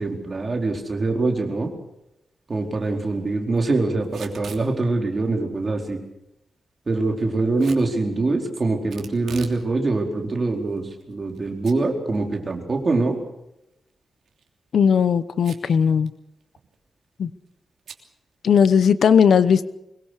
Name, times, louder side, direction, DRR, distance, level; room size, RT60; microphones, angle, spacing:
voice 1, 0.0-1.7 2.5-6.0 6.9-13.2, right 3 dB, 30° right, 2 dB, 4.4 m, -24 dB
Packing tape duct tape / Tearing, 4.0-4.7 7.6-7.9 8.9-9.6 10.0-10.1 10.8-11.4 11.6-11.8 12.2-12.3 14.2-14.5 15.4-15.8 16.1-16.2 16.4-16.8 17.9-18.0, right 7 dB, 85° right, 3.1 m, -40 dB
voice 2, 14.7-16.1 17.2-17.3 18.4-19.6, left 7 dB, 70° left, 14 dB, 1.0 m, -17 dB
24.0 x 22.0 x 6.7 m, 0.86 s
wide cardioid pair, 145°, 0 cm